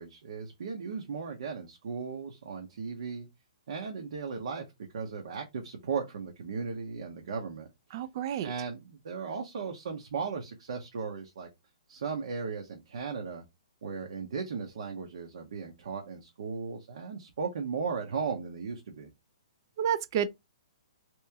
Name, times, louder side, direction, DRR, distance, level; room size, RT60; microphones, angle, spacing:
voice 1, 0.0-3.3 3.7-4.6 4.9-7.7 8.4-11.5 11.9-13.4 13.8-19.1, right 5 dB, 70° right, 0.8 m, -36 dB
voice 2, 7.9-8.5 19.8-20.3, right 9 dB, 40° right, 0.4 m, -30 dB
3.0 x 2.7 x 3.4 m
hypercardioid pair, 155°, 3 cm